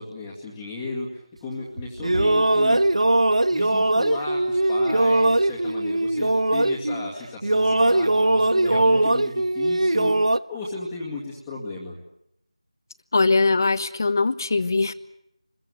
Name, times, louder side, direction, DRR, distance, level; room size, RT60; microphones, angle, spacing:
voice 1, 0.0-2.8 3.5-12.0, left 3 dB, 5° left, -6 dB, 2.2 m, -35 dB
sound 1, 1.8-7.1 7.4-10.4, right 1 dB, 85° right, 1.1 m, -20 dB
voice 2, 13.1-14.9, left 3 dB, 35° left, 13 dB, 1.4 m, -21 dB
27.5 x 22.0 x 8.2 m, 0.77 s
figure-of-eight pair, 175°, 3 cm